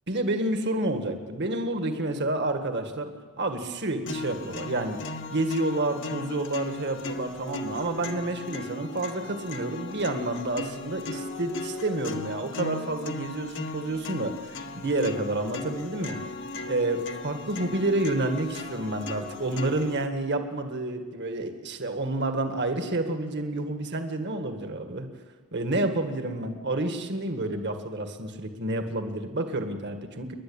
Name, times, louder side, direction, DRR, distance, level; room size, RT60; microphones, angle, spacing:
voice 1, 0.1-3.1 3.4-5.0 5.3-16.2 16.7-25.1 25.5-30.3, right 2 dB, 55° right, 6 dB, 1.8 m, -29 dB
sound 1, 4.1-20.1, left 3 dB, 60° left, 1.5 m, -37 dB
29.5 x 11.5 x 8.8 m, 1.5 s
head